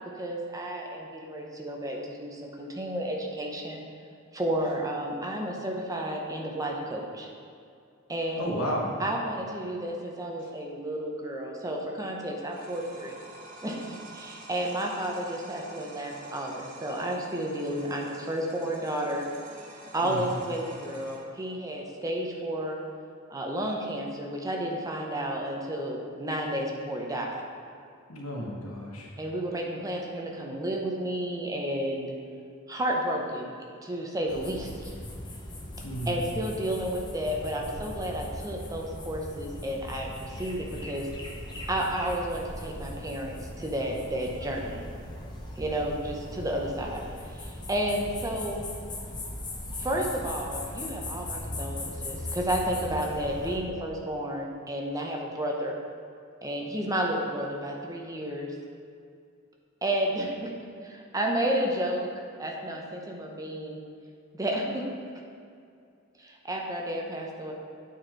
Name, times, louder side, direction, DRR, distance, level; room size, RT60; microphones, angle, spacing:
voice 1, 0.2-3.8 4.3-7.3 8.1-8.4 9.0-13.2 13.6-19.3 19.9-22.8 23.3-27.4 29.2-32.2 32.7-33.5 33.8-34.9 36.1-41.1 41.7-44.8 45.6-47.0 47.3-48.7 49.8-55.8 56.4-58.5 59.8-60.5 60.8-62.1 62.4-63.8 64.3-64.8 66.2-67.5, right 1 dB, 15° right, 0 dB, 0.7 m, -31 dB
voice 2, 8.4-8.9 20.0-20.2 28.1-29.1 35.8-36.2, equal, 90° left, -2 dB, 1.4 m, -32 dB
sound 1, 12.5-21.2, right 1 dB, 40° right, 1.2 m, -48 dB
sound 2, 34.3-53.6, left 1 dB, 20° left, 0.9 m, -39 dB
9.2 x 4.3 x 4.5 m, 2.4 s
head